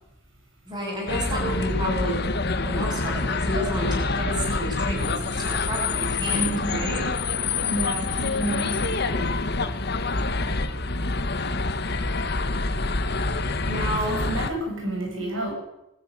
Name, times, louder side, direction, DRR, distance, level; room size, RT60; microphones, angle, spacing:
voice 1, 0.7-2.2 2.6-7.1 13.6-14.2, right 1 dB, 20° right, -1 dB, 7.7 m, -31 dB
sound 1, 1.1-14.5, left 3 dB, 50° left, 1.4 m, -26 dB
voice 2, 6.3-6.8 7.7-9.3 14.0-15.5, right 1 dB, 70° right, 1 dB, 7.4 m, -30 dB
20.5 x 13.5 x 9.9 m, 0.89 s
head